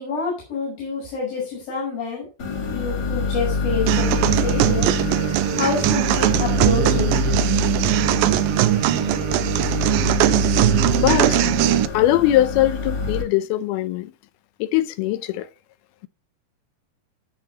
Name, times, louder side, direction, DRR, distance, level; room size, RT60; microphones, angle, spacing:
voice 1, 0.0-4.9 5.5-7.1, left 4 dB, 65° left, 7.7 m, -28 dB
sound 1, 2.4-13.2, left 4 dB, 25° left, 3.2 m, -26 dB
sound 2, 3.9-11.9, right 14 dB, 80° right, 2.3 m, -20 dB
voice 2, 11.0-11.4 11.9-14.1 14.6-15.5, left 14 dB, 80° left, 2.7 m, -20 dB
16.0 x 7.0 x 3.0 m
omnidirectional pair, 4.4 m